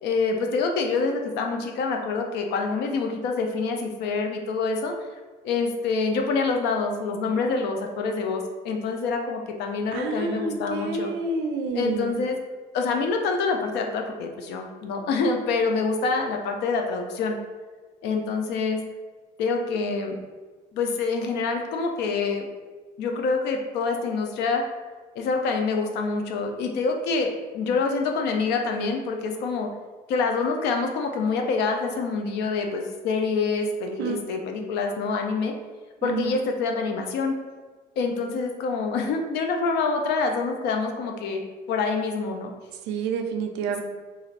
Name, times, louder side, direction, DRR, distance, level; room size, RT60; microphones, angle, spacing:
voice 1, 0.0-4.9 5.4-11.1 11.7-12.4 12.7-17.4 18.0-18.8 19.4-20.2 20.7-22.5 23.0-24.6 25.2-29.7 30.1-35.5 36.0-37.3 38.0-41.4 41.7-42.5, left 4 dB, 80° left, 4 dB, 0.4 m, -26 dB
voice 2, 9.9-12.2 34.0-34.2 36.0-36.4 42.9-43.8, right 4 dB, 85° right, 5 dB, 0.4 m, -29 dB
2.4 x 2.4 x 3.2 m, 1.4 s
cardioid pair, 110°, 17 cm